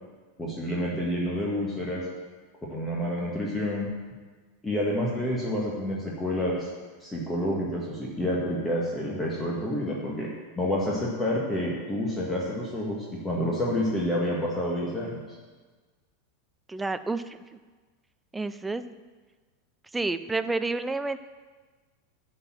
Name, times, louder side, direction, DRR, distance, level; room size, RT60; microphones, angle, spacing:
voice 1, 0.4-2.0 2.7-3.9 4.6-6.7 7.0-10.3 10.6-15.4, left 1 dB, 10° left, -4 dB, 1.8 m, -29 dB
voice 2, 16.7-17.4 18.3-19.0 19.9-21.2, right 3 dB, 10° right, 12 dB, 0.5 m, -29 dB
11.0 x 4.5 x 7.4 m, 1.4 s
figure-of-eight pair, 85°, 0 cm